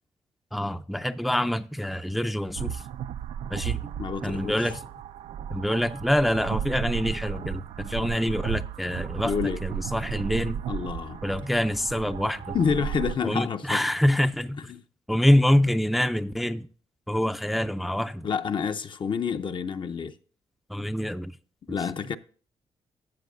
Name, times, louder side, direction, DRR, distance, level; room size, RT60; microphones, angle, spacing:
voice 1, 0.5-2.8 3.5-3.9 4.2-4.8 5.5-9.3 9.6-10.6 11.2-12.6 13.2-14.7 15.1-16.7 17.1-18.3 20.7-21.3, left 1 dB, ahead, 0.4 m, -25 dB
sound 1, 2.6-13.2, right 9 dB, 85° right, 0.4 m, -34 dB
voice 2, 4.0-4.7 9.2-9.6 10.7-11.2 12.5-13.8 14.6-14.8 18.2-20.2 21.7-22.2, left 6 dB, 45° left, 0.6 m, -28 dB
13.5 x 7.6 x 2.5 m
cardioid pair, 90°, 11 cm